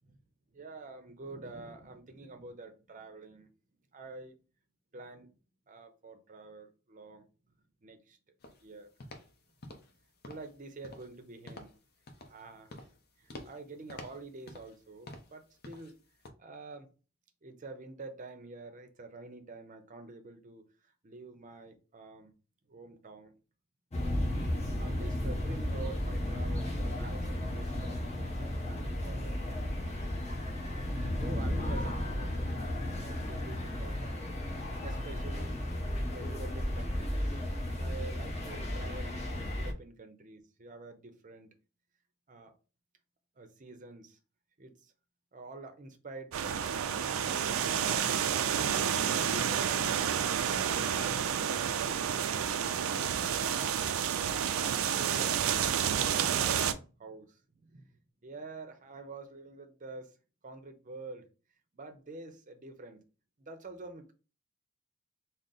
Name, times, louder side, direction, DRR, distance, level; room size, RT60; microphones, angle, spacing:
voice 1, 0.5-3.5 3.9-4.3 4.9-5.3 5.7-7.3 7.8-8.2 8.6-8.9 10.2-11.7 12.3-12.7 13.2-15.9 16.4-16.9 17.4-20.7 21.0-22.3 22.7-23.3 24.7-29.8 31.2-32.6 33.0-34.2 34.8-35.6 36.0-37.3 37.8-41.5 42.3-42.5 43.4-44.2 44.6-44.9 45.3-46.8 47.2-47.6 48.3-49.9 50.3-52.7 53.4-54.0 54.5-55.7 56.0-60.1 60.4-61.2 61.7-63.0 63.4-64.1, right 3 dB, 40° right, 0.6 m, -47 dB
sound 1, 8.4-8.6 9.0-9.3 9.6-10.0 10.2-10.5 10.8-11.2 11.5-11.8 12.1-12.4 12.7-13.0 13.3-13.6 13.9-14.8 15.1-15.4 15.6-15.9 16.3-16.4, left 2 dB, 50° left, 0.6 m, -48 dB
sound 2, 23.9-39.7, left 1 dB, 30° left, 1.0 m, -34 dB
sound 3, 46.3-56.7, right 8 dB, 85° right, 0.4 m, -30 dB
3.7 x 2.1 x 3.9 m
head